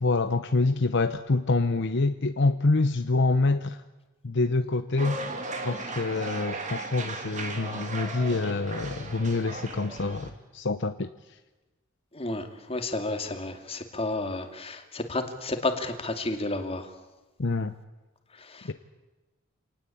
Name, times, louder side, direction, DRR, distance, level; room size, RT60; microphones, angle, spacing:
voice 1, 0.0-3.8 4.2-5.2 5.6-11.1 17.4-17.7 18.6-18.7, left 3 dB, 60° left, 9 dB, 0.8 m, -26 dB
sound 1, 5.0-10.3, right 2 dB, 35° right, 2.9 m, -36 dB
voice 2, 12.1-16.9 18.3-18.7, left 2 dB, 30° left, 6 dB, 2.5 m, -32 dB
27.5 x 19.0 x 8.6 m, 1.1 s
head